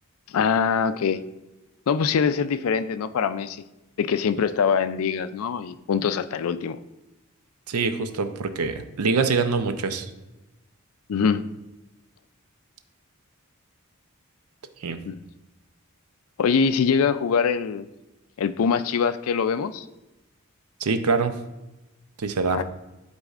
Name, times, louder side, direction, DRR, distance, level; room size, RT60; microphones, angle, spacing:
voice 1, 0.3-1.2 1.9-3.6 4.0-6.8 11.1-11.5 15.1-15.2 16.4-17.9 18.4-19.8 22.5-22.6, left 6 dB, 70° left, 13 dB, 0.4 m, -23 dB
voice 2, 7.7-10.1 14.8-15.0 20.8-21.3 22.2-22.6, right 4 dB, 85° right, 9 dB, 0.6 m, -24 dB
11.0 x 4.1 x 2.4 m, 1.0 s
head